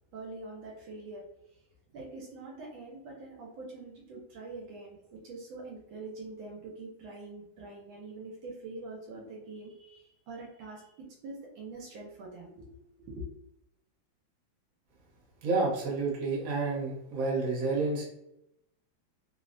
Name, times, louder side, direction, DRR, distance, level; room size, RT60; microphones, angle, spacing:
voice 1, 0.1-1.2 1.9-13.2, right 2 dB, 80° right, -2 dB, 1.4 m, -44 dB
voice 2, 15.4-18.1, right 3 dB, 60° right, -3 dB, 1.3 m, -29 dB
3.5 x 2.0 x 2.5 m, 0.81 s
omnidirectional pair, 2.2 m